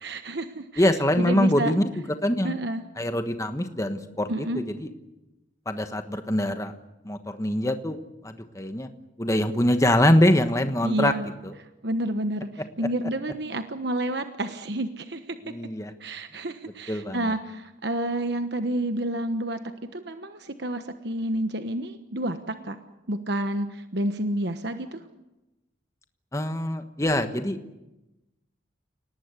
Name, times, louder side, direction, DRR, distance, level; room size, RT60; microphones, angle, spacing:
voice 1, 0.0-0.8 1.2-1.7 2.4-2.8 4.3-4.6 10.8-11.2 11.8-12.5 12.8-15.5 16.0-19.6 19.9-22.8 23.1-25.0, right 1 dB, 55° right, 8 dB, 1.2 m, -29 dB
voice 2, 0.8-2.6 3.0-4.9 5.6-6.7 7.0-8.0 8.2-8.9 9.2-11.1 11.4-11.5 15.4-15.9 16.9-17.3 26.3-27.6, left 1 dB, 15° left, 8 dB, 1.3 m, -24 dB
29.5 x 19.0 x 8.3 m, 1.0 s
head